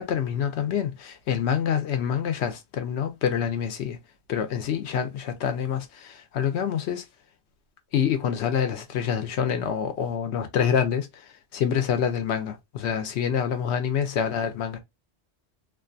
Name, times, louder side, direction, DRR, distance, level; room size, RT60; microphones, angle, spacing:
voice 1, 0.0-4.0 4.3-7.0 7.9-14.8, left 8 dB, 85° left, 0.9 m, -26 dB
2.5 x 2.3 x 2.5 m
omnidirectional pair, 1.1 m